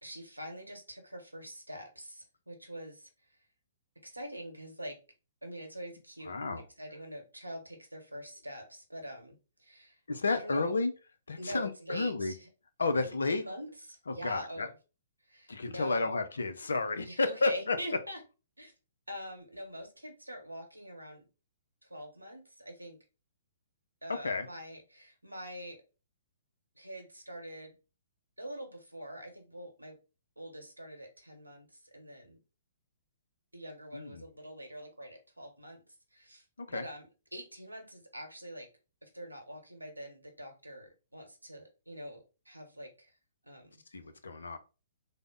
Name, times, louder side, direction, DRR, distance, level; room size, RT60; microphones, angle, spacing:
voice 1, 0.0-3.1 4.0-5.0 5.4-10.0 10.3-10.7 11.4-12.5 13.0-14.7 15.3-16.2 17.0-18.2 18.6-18.7 19.1-21.2 21.8-23.0 24.0-25.8 26.7-27.7 28.4-30.0 30.4-32.4 33.5-35.8 36.1-38.7 39.0-43.1 43.4-43.7, equal, 85° right, 3 dB, 1.0 m, -44 dB
voice 2, 6.3-6.6 10.1-10.9 11.3-12.3 12.8-13.4 14.1-14.7 15.5-17.8 24.1-24.5 33.9-34.2 36.6-36.9 43.9-44.6, left 3 dB, 70° left, 9 dB, 0.5 m, -31 dB
3.4 x 2.1 x 3.6 m, 0.32 s
figure-of-eight pair, 120°, 0 cm